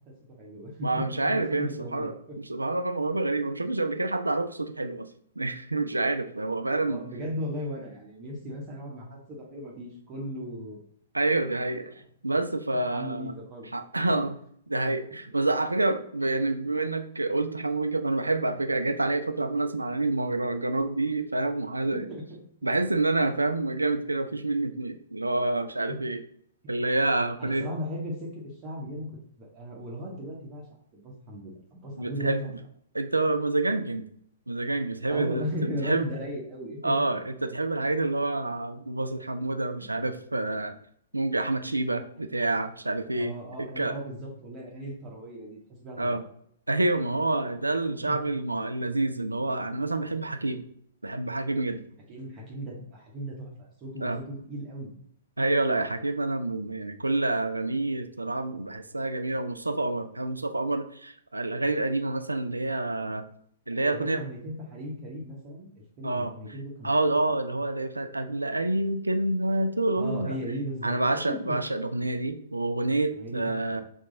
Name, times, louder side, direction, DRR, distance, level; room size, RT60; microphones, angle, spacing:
voice 1, 0.1-2.4 6.8-10.8 12.9-13.7 21.9-22.4 27.4-30.7 30.9-32.5 35.0-37.0 39.8-40.0 42.1-42.4 43.1-46.2 48.0-48.2 52.1-54.9 63.7-66.9 70.0-71.6 73.1-73.8, equal, 25° right, -3 dB, 1.0 m, -37 dB
voice 2, 0.8-5.1 5.4-7.0 11.1-11.9 12.2-13.3 13.7-14.4 14.7-22.1 22.6-26.2 26.7-27.7 32.0-32.5 32.9-34.1 34.5-36.1 36.8-40.7 41.1-43.3 43.8-44.0 46.0-46.2 46.7-50.6 51.0-51.8 54.0-54.2 55.4-63.2 63.7-64.2 66.0-66.3 66.8-70.4 70.8-73.8, right 2 dB, 85° right, 8 dB, 0.4 m, -28 dB
4.7 x 2.3 x 3.8 m, 0.65 s
figure-of-eight pair, 115°, 0 cm